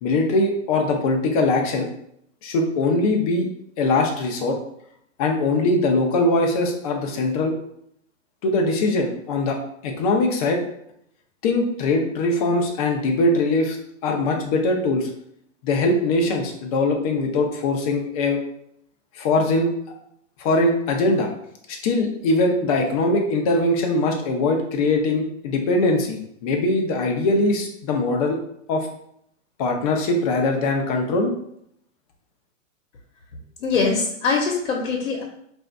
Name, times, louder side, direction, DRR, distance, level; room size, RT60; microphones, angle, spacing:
voice 1, 0.0-1.9 2.4-3.5 3.8-4.6 5.2-7.5 8.4-9.6 9.8-10.6 11.4-13.8 14.0-15.1 15.6-18.4 19.1-19.7 20.4-21.3 21.7-28.4 28.7-28.9 29.6-31.3, left 2 dB, 30° left, 2 dB, 0.6 m, -21 dB
voice 2, 33.6-35.2, left 4 dB, 75° left, -2 dB, 1.0 m, -22 dB
3.1 x 2.6 x 4.4 m, 0.72 s
hypercardioid pair, 155°, 38 cm